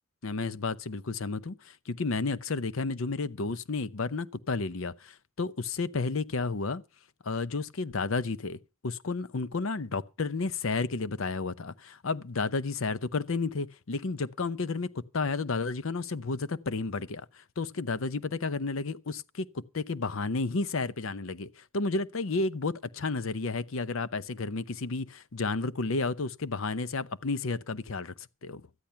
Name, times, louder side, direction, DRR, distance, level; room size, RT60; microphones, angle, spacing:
voice 1, 0.2-6.8 7.2-28.1 28.4-28.6, left 3 dB, 70° left, 0.7 m, -32 dB
13.0 x 10.5 x 5.7 m
head